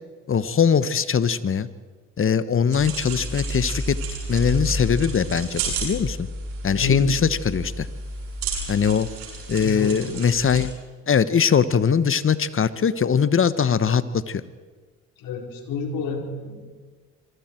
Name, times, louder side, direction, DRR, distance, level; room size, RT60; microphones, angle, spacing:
voice 1, 0.3-1.7 2.2-4.0 4.3-6.3 6.6-7.9 8.7-9.1 9.5-10.7 11.1-14.4, left 7 dB, 35° left, 15 dB, 1.3 m, -21 dB
sound 1, 2.7-10.7, right 2 dB, 80° right, 7.7 m, -31 dB
voice 2, 6.8-7.2 9.6-10.3 15.2-16.7, left 3 dB, 70° left, 2 dB, 4.4 m, -30 dB
26.5 x 23.0 x 4.6 m, 1.4 s
hypercardioid pair, 55°, 36 cm